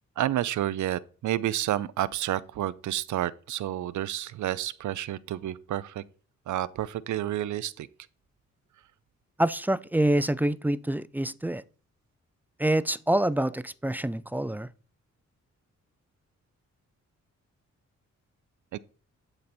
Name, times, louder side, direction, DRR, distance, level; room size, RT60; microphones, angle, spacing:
voice 1, 0.2-6.0 6.5-7.9 18.7-18.8, right 12 dB, 80° right, 0.5 m, -30 dB
voice 2, 9.4-11.6 12.6-14.7, right 1 dB, 5° right, 0.3 m, -26 dB
10.5 x 4.0 x 4.4 m
cardioid pair, 90°, 29 cm